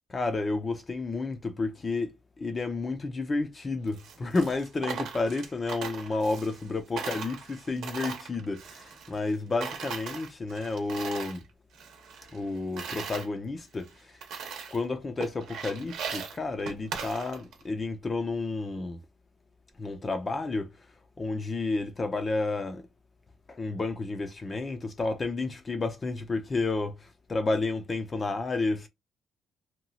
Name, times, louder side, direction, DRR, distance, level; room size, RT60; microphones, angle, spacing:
voice 1, 0.1-11.4 12.3-14.2 14.7-19.0 19.8-20.9 21.2-22.9 23.5-28.9, left 3 dB, 25° left, 0.4 m, -31 dB
Coin (dropping), 3.9-6.7 7.0-9.3 9.6-11.4 11.7-13.3 13.8-13.9 14.2-14.8 15.2-17.6, right 6 dB, 75° right, 0.8 m, -39 dB
2.8 x 2.2 x 2.7 m
cardioid pair, 150°, 0 cm